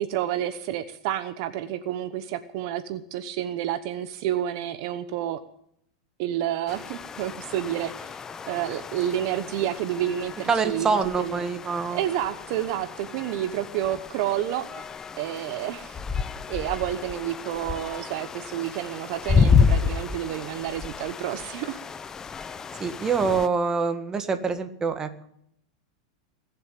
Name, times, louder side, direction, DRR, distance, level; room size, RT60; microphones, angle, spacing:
voice 1, 0.0-5.4 6.2-8.2 8.5-11.4 11.9-14.7 15.2-16.0 16.5-21.8, right 11 dB, 60° right, 11 dB, 1.0 m, -29 dB
sound 1, 6.7-23.5, left 5 dB, 20° left, 0.7 m, -30 dB
voice 2, 10.5-12.0 22.8-25.3, right 5 dB, 20° right, 8 dB, 1.7 m, -25 dB
20.5 x 7.3 x 9.1 m, 0.70 s
supercardioid pair, 125°, 3 cm